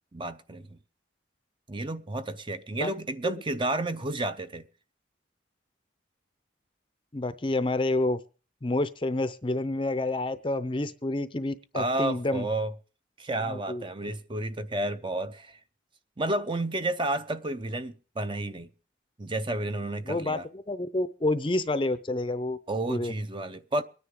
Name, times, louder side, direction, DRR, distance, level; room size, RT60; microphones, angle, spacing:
voice 1, 0.1-0.8 1.7-4.7 11.7-12.7 13.2-15.6 16.2-18.7 19.2-20.5 22.7-23.8, right 2 dB, 25° right, 0.6 m, -31 dB
voice 2, 7.1-8.2 8.6-12.4 13.5-13.8 20.1-20.4 20.7-22.6 22.9-23.1, left 2 dB, 25° left, 0.6 m, -28 dB
24.0 x 9.9 x 3.7 m
head